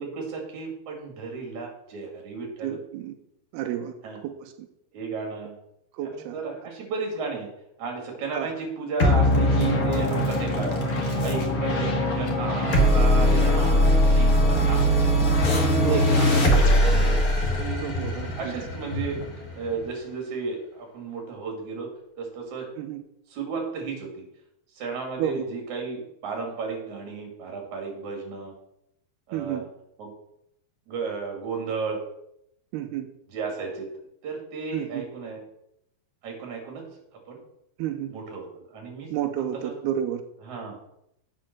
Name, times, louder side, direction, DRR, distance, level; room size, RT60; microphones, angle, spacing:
voice 1, 0.0-2.8 4.0-4.2 4.9-5.6 6.0-7.5 7.8-10.9 11.2-14.9 15.9-16.8 17.5-19.2 19.5-21.9 22.2-22.7 23.3-24.3 24.7-28.5 29.3-29.7 30.0-30.1 30.9-32.0 33.3-33.9 34.2-35.4 36.2-36.8 37.3-37.4 38.1-39.1 39.4-39.7 40.4-40.8, right 4 dB, 50° right, 1 dB, 3.6 m, -33 dB
voice 2, 2.6-3.1 3.5-3.9 4.2-4.5 5.9-6.4 8.3-8.5 15.8-16.2 17.8-18.5 22.8-23.0 25.2-25.5 29.3-29.6 32.7-33.1 34.7-35.0 37.8-38.1 39.1-40.2, right 10 dB, 90° right, 6 dB, 2.8 m, -30 dB
sound 1, 9.0-19.8, equal, 55° left, 1.0 m, -21 dB
8.3 x 7.6 x 6.1 m, 0.79 s
omnidirectional pair, 4.5 m